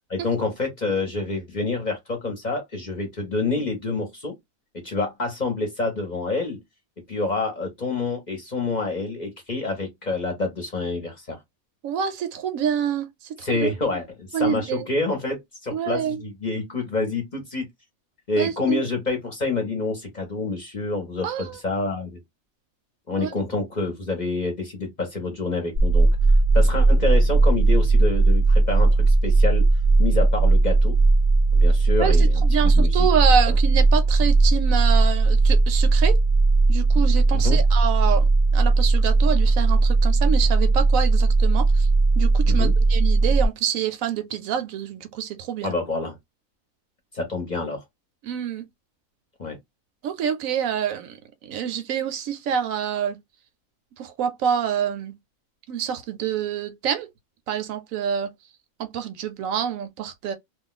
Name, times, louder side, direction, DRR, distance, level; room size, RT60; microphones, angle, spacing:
voice 1, 0.1-4.3 4.8-6.6 7.1-11.4 13.4-17.6 18.3-22.2 23.1-26.1 26.5-29.6 30.0-31.0 31.5-32.4 32.7-33.1 33.5-33.6 37.4-37.6 42.5-42.7 45.6-46.2 47.1-47.8 49.4-49.6, left 3 dB, 40° left, 0.8 m, -27 dB
voice 2, 11.8-13.1 13.4-13.7 14.3-14.8 15.7-16.2 18.4-18.8 21.2-21.4 23.2-23.3 32.0-36.2 36.7-38.2 38.5-41.9 42.2-45.7 48.2-48.6 50.0-51.2 51.4-53.2 54.0-55.1 55.7-57.1 57.5-58.3 58.8-60.3, right 8 dB, 75° right, 0.9 m, -26 dB
sound 1, 25.8-43.5, right 3 dB, 45° right, 0.5 m, -18 dB
2.4 x 2.2 x 3.7 m
omnidirectional pair, 1.5 m